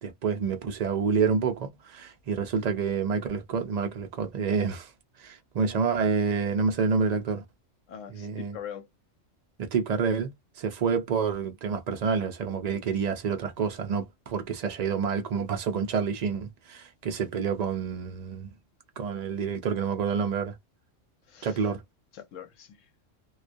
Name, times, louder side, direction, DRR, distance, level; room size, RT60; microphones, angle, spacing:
voice 1, 0.0-4.9 5.2-7.4 8.1-8.6 9.6-18.5 19.0-20.6 21.4-21.8, right 5 dB, 85° right, 0.3 m, -28 dB
voice 2, 7.9-8.9 21.3-21.7 22.1-22.9, left 8 dB, 85° left, 1.0 m, -42 dB
2.2 x 2.2 x 2.5 m
omnidirectional pair, 1.3 m